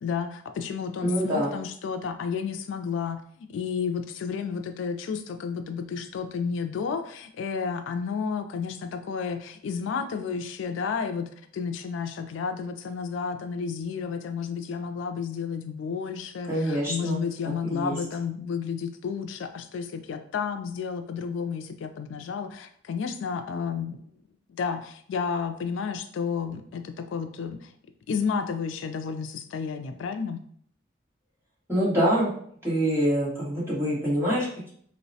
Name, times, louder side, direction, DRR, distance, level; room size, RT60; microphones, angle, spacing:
voice 1, 0.0-3.2 3.5-24.0 24.5-27.7 28.1-30.4, left 6 dB, 85° left, 7 dB, 0.3 m, -31 dB
voice 2, 1.0-1.5 16.5-18.0 31.7-32.3 32.6-34.7, equal, 15° right, -8 dB, 1.3 m, -26 dB
4.5 x 2.1 x 2.7 m, 0.62 s
head